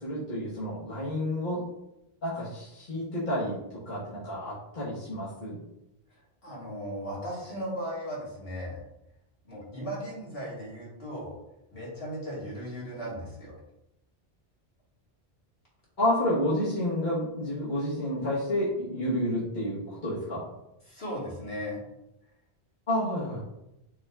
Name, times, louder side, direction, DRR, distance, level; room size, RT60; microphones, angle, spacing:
voice 1, 0.0-1.6 2.2-3.6 3.9-5.6 16.0-20.4 22.9-23.4, left 1 dB, 45° left, -9 dB, 1.8 m, -30 dB
voice 2, 6.4-8.8 9.4-11.3 11.7-13.6 20.9-21.8, equal, 60° left, -6 dB, 2.6 m, -37 dB
6.2 x 4.1 x 3.7 m, 0.87 s
omnidirectional pair, 1.1 m